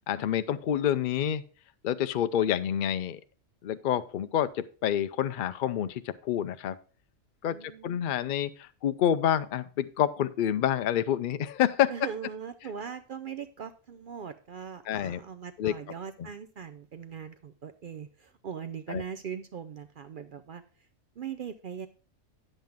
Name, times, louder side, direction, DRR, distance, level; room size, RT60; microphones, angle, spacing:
voice 1, 0.1-1.4 1.8-3.2 3.6-6.8 7.4-7.6 7.8-11.9 14.9-15.2 15.6-15.7 18.9-19.0, left 10 dB, 70° left, 12 dB, 0.4 m, -28 dB
voice 2, 7.4-8.3 11.9-20.6 21.2-21.9, right 7 dB, 65° right, 10 dB, 0.5 m, -40 dB
9.0 x 7.6 x 3.5 m, 0.39 s
omnidirectional pair, 1.4 m